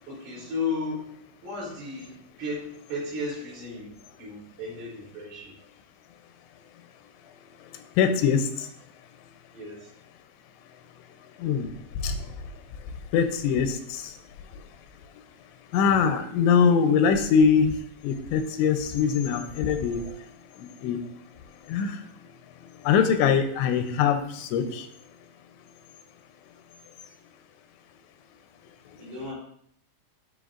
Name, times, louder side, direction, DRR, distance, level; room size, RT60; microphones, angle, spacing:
voice 1, 0.1-1.1 1.4-5.5 9.5-9.9 29.0-29.3, left 3 dB, 60° right, -6 dB, 5.2 m, -34 dB
voice 2, 8.0-8.5 11.4-11.7 12.0-12.1 13.1-14.0 15.7-17.7 18.0-20.0 20.6-21.0 21.7-22.0 22.9-24.8, left 6 dB, 90° left, 8 dB, 3.0 m, -22 dB
13.0 x 5.3 x 2.5 m, 0.66 s
omnidirectional pair, 5.1 m